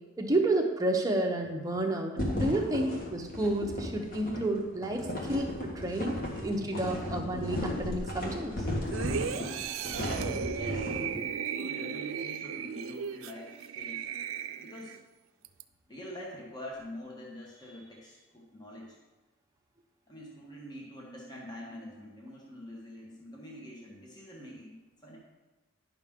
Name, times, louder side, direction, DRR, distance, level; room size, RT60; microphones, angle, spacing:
voice 1, 0.2-8.5 11.1-11.3, right 1 dB, 15° right, 1 dB, 0.9 m, -30 dB
sound 1, 2.2-11.1, left 1 dB, 45° left, 1.5 m, -35 dB
sound 2, 8.9-15.0 15.4-15.6, right 7 dB, 75° right, 0.4 m, -36 dB
voice 2, 10.3-11.0 11.6-14.1 14.6-15.0 15.9-19.0 20.1-25.2, equal, 20° left, -3 dB, 1.2 m, -45 dB
10.5 x 5.8 x 3.7 m, 1.2 s
head